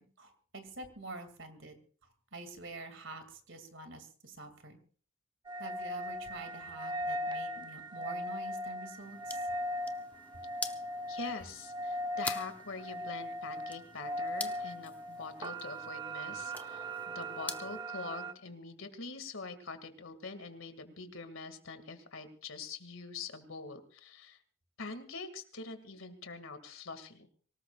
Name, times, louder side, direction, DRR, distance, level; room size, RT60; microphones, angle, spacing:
voice 1, 0.0-1.8 2.3-4.8 5.6-9.4, right 2 dB, 60° right, 8 dB, 2.5 m, -47 dB
sound 1, 5.4-18.3, equal, 20° right, 1.0 m, -39 dB
sound 2, 9.0-17.8, left 2 dB, 10° left, 0.7 m, -46 dB
voice 2, 11.1-24.4 24.8-27.3, left 4 dB, 75° left, 9 dB, 2.2 m, -44 dB
24.5 x 18.5 x 2.4 m, 0.42 s
head